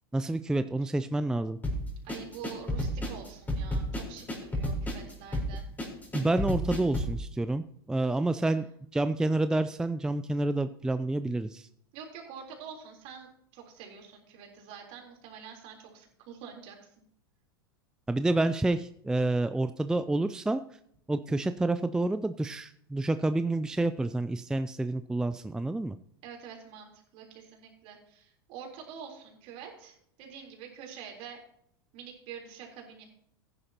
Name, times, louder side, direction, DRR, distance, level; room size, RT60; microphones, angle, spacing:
voice 1, 0.1-1.6 6.1-8.6 8.9-11.7 18.1-20.6 21.1-26.0, right 2 dB, 5° right, 11 dB, 0.4 m, -28 dB
sound 1, 1.6-7.2, equal, 15° left, 4.3 m, -32 dB
voice 2, 2.0-5.7 11.9-16.9 26.2-31.4 31.9-33.0, right 7 dB, 50° right, 1 dB, 3.7 m, -46 dB
15.5 x 10.0 x 2.9 m, 0.69 s
hypercardioid pair, 95°, 12 cm